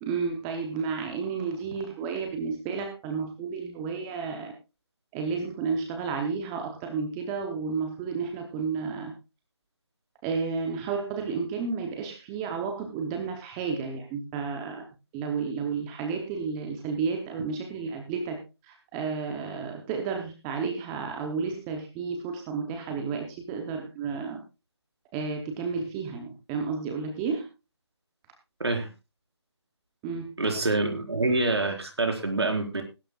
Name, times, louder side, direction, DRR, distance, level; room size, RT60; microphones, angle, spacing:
voice 1, 0.0-4.5 5.1-9.1 10.2-14.8 15.1-24.4 25.1-27.5 30.0-30.3, right 5 dB, 10° right, 4 dB, 0.7 m, -32 dB
voice 2, 30.4-32.8, right 2 dB, 65° right, 3 dB, 4.5 m, -26 dB
21.0 x 11.5 x 2.3 m, 0.28 s
figure-of-eight pair, 160°, 15 cm